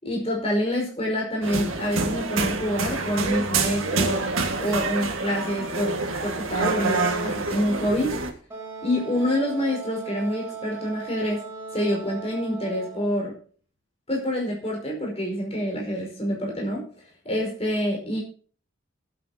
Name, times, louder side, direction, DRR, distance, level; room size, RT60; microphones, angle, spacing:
voice 1, 0.0-4.3 4.6-8.1 8.8-11.4 11.7-13.4 14.1-16.9 17.2-18.2, equal, 30° left, -1 dB, 5.2 m, -27 dB
sound 1, 1.4-8.3, right 3 dB, 90° right, 2.0 m, -27 dB
Wind instrument woodwind instrument, 8.5-13.2, right 5 dB, 10° right, 6.0 m, -38 dB
21.0 x 8.9 x 2.9 m, 0.42 s
head